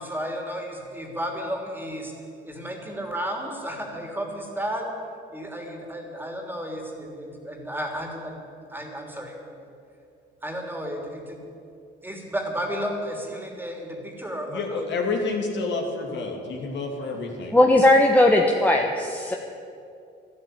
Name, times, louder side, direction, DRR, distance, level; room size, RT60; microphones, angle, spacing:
voice 1, 0.0-2.1 2.4-4.9 5.3-8.3 8.7-9.5 10.4-11.4 12.0-14.8, equal, 10° right, 1 dB, 3.1 m, -33 dB
voice 2, 14.5-17.6, left 3 dB, 65° left, 1 dB, 2.8 m, -29 dB
voice 3, 17.5-19.4, left 1 dB, 10° left, 1 dB, 1.2 m, -18 dB
12.0 x 12.0 x 8.9 m, 2.5 s
cardioid pair, 90°, 20 cm